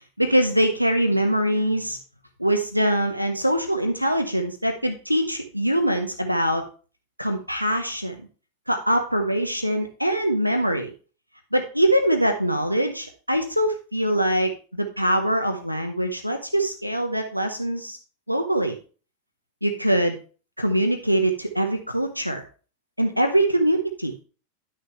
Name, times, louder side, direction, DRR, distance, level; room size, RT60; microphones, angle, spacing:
voice 1, 0.2-2.0 2.4-6.6 7.2-8.3 8.7-10.9 11.5-18.0 18.3-18.8 19.6-20.2 20.6-22.4 23.0-24.1, right 1 dB, 90° right, 5 dB, 0.9 m, -23 dB
10.5 x 6.6 x 3.2 m, 0.36 s
figure-of-eight pair, 90°, 0 cm